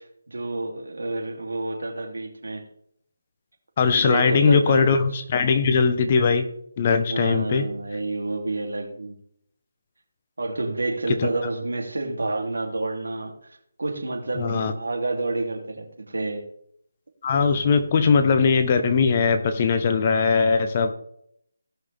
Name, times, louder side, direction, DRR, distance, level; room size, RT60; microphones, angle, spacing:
voice 1, 0.0-2.6 3.9-4.8 7.1-9.2 10.4-13.3 13.8-16.4, right 2 dB, 80° right, 2 dB, 3.0 m, -29 dB
voice 2, 3.8-6.5 6.8-7.7 14.3-14.7 17.2-20.9, left 5 dB, 30° left, 8 dB, 1.0 m, -20 dB
18.0 x 6.1 x 3.5 m, 0.70 s
figure-of-eight pair, 165°, 0 cm